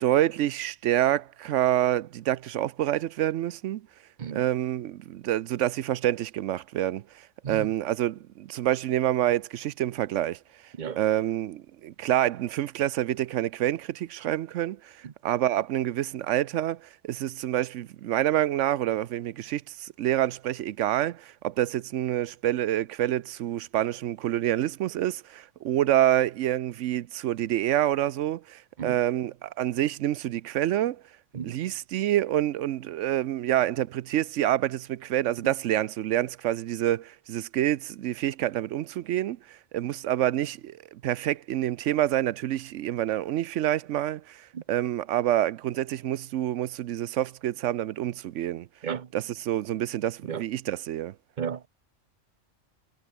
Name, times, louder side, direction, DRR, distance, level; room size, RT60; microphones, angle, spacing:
voice 1, 0.0-3.9 4.3-10.4 11.0-31.0 31.4-48.7 49.1-51.1, right 12 dB, 80° right, 0.9 m, -27 dB
voice 2, 4.2-4.5 7.4-7.7 10.8-11.0 15.0-15.1 28.8-29.0 31.3-31.6 44.5-44.6 48.8-49.1 50.3-50.4 51.4-51.7, right 7 dB, 45° right, 0.8 m, -33 dB
omnidirectional pair, 1.3 m